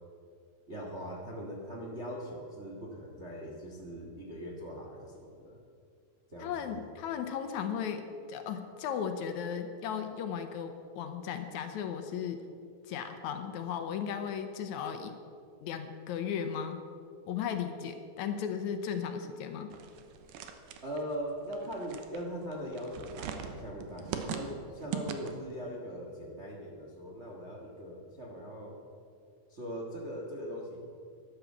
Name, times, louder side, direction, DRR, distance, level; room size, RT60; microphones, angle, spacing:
voice 1, 0.7-5.6 6.3-6.8 20.8-28.8 29.5-30.8, equal, 40° right, -2 dB, 0.9 m, -40 dB
voice 2, 6.4-12.4 12.8-15.2 15.6-16.8 17.3-19.7 24.3-24.4, left 7 dB, 75° left, 7 dB, 2.1 m, -36 dB
sound 1, 19.7-25.5, right 8 dB, 85° right, 2.6 m, -41 dB
11.5 x 11.0 x 7.2 m, 2.3 s
omnidirectional pair, 3.7 m